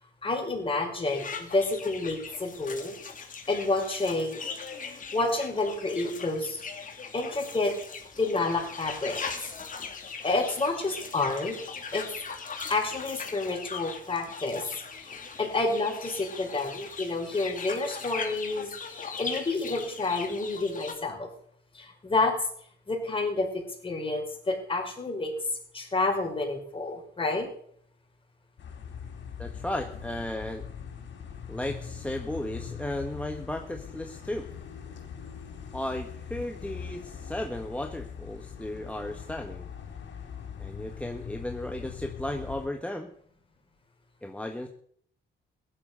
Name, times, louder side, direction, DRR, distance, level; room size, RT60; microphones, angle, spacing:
voice 1, 0.2-3.0 3.5-4.4 5.1-6.6 7.1-7.7 8.2-9.2 10.2-11.6 11.9-12.1 12.7-21.3 21.7-22.4 22.9-25.3 25.7-27.5, left 3 dB, 25° left, 2 dB, 5.1 m, -29 dB
sound 1, 1.1-20.9, left 5 dB, 40° left, 2.8 m, -40 dB
sound 2, 28.6-42.7, left 7 dB, 65° left, 4.1 m, -41 dB
voice 2, 29.4-30.7 31.5-34.5 35.7-39.7 40.6-43.1 44.2-44.7, left 1 dB, 5° left, 4 dB, 1.5 m, -35 dB
16.0 x 11.5 x 6.9 m, 0.62 s
cardioid pair, 90°, 20 cm